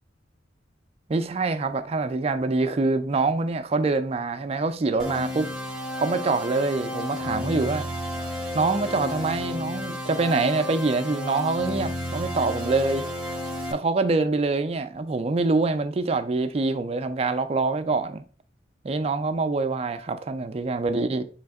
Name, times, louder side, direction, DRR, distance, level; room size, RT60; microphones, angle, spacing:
voice 1, 1.1-5.5 6.0-7.8 8.5-13.1 13.7-18.2 18.8-21.2, right 3 dB, 35° right, 0.4 m, -25 dB
sound 1, 5.0-13.7, left 1 dB, 5° right, 0.7 m, -32 dB
3.4 x 3.2 x 4.6 m
head